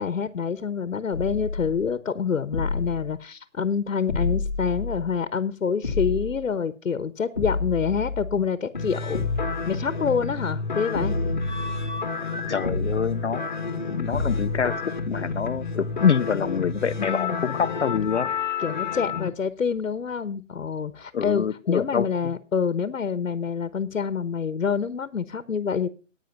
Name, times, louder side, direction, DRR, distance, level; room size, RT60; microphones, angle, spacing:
voice 1, 0.0-9.2 9.7-11.1 17.0-17.5 18.6-25.9, left 6 dB, 80° left, 14 dB, 1.0 m, -27 dB
sound 1, 1.1-1.9 2.5-3.1 4.1-5.1 5.8-6.4 7.4-8.4 9.1-9.7 10.9-12.1 12.6-13.3 14.1-14.7, left 3 dB, 15° left, 0.9 m, -29 dB
sound 2, 8.7-19.3, left 4 dB, 35° left, 1.1 m, -30 dB
voice 2, 12.5-13.5 13.9-18.3 21.1-22.1, left 7 dB, 60° left, 12 dB, 0.6 m, -26 dB
10.5 x 9.1 x 5.7 m, 0.35 s
hypercardioid pair, 175°, 39 cm